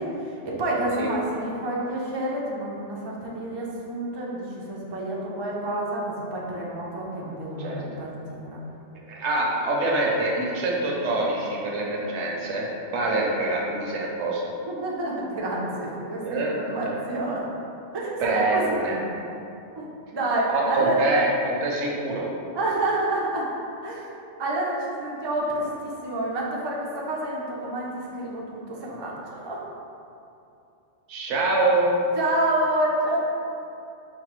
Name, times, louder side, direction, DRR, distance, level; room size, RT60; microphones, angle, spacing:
voice 1, 0.0-8.6 13.1-13.3 14.7-17.4 17.9-19.1 19.8-19.9 20.1-21.1 22.5-23.5 23.8-24.1 24.4-29.6 32.2-33.2, right 1 dB, 40° right, -4 dB, 0.3 m, -28 dB
voice 2, 9.1-14.4 16.2-16.5 16.8-16.9 18.2-19.0 20.5-22.3 31.1-32.0, right 2 dB, 75° right, -2 dB, 0.9 m, -25 dB
5.2 x 2.2 x 3.0 m, 2.7 s
omnidirectional pair, 1.2 m